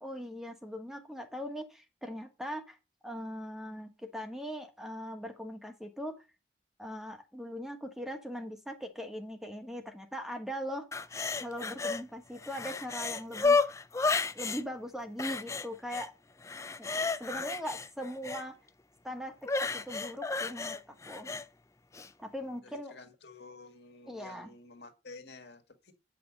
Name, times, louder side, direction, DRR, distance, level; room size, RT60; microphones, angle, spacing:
voice 1, 0.0-2.8 3.0-6.2 6.8-10.9 11.4-13.7 14.3-16.1 16.8-16.9 17.2-18.6 19.0-21.3 22.2-22.9 24.1-24.5, equal, 5° right, 1.3 m, -40 dB
sound 1, 10.9-12.0 12.4-14.6 15.2-16.1 16.4-18.4 19.4-21.4 21.9-22.1, left 4 dB, 15° left, 0.4 m, -32 dB
voice 2, 22.6-25.9, left 3 dB, 70° left, 1.9 m, -51 dB
9.5 x 6.1 x 5.3 m
head